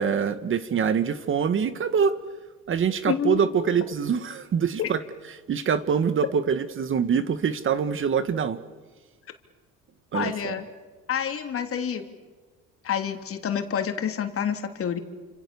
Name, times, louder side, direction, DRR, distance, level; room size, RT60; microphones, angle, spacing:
voice 1, 0.0-2.1 2.7-5.0 5.5-8.6 10.1-10.5, right 7 dB, 40° right, 12 dB, 1.5 m, -24 dB
voice 2, 3.1-3.8 4.8-4.9 10.1-10.7 11.1-12.0 12.8-15.0, left 8 dB, 45° left, 5 dB, 3.2 m, -28 dB
29.5 x 27.0 x 7.1 m, 1.4 s
cardioid pair, 105°, 31 cm